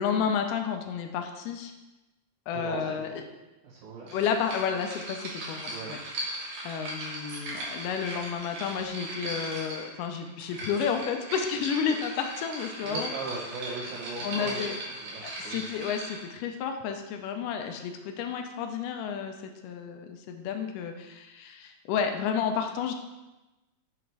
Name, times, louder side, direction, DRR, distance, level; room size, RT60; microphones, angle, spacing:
voice 1, 0.0-1.7 2.5-3.1 4.1-6.0 6.6-13.1 14.2-14.8 15.2-19.3 19.6-22.9, left 7 dB, 80° left, 5 dB, 2.0 m, -31 dB
voice 2, 2.5-3.2 3.6-4.2 5.7-6.0 12.8-14.8 15.0-15.7, right 4 dB, 90° right, -6 dB, 3.4 m, -38 dB
sound 1, 4.1-16.3, right 1 dB, 60° right, 1.8 m, -38 dB
7.4 x 3.0 x 4.7 m, 1.0 s
omnidirectional pair, 4.2 m